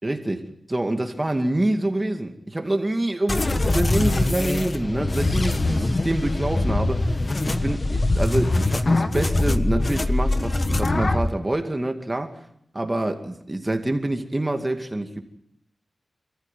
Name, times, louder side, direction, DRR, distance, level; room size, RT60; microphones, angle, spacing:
voice 1, 0.0-12.5 12.7-15.2, right 1 dB, 20° right, 5 dB, 2.4 m, -26 dB
sound 1, 3.3-11.3, left 2 dB, 40° left, 1.4 m, -22 dB
27.5 x 14.5 x 9.3 m, 0.75 s
wide cardioid pair, 70°, 0 cm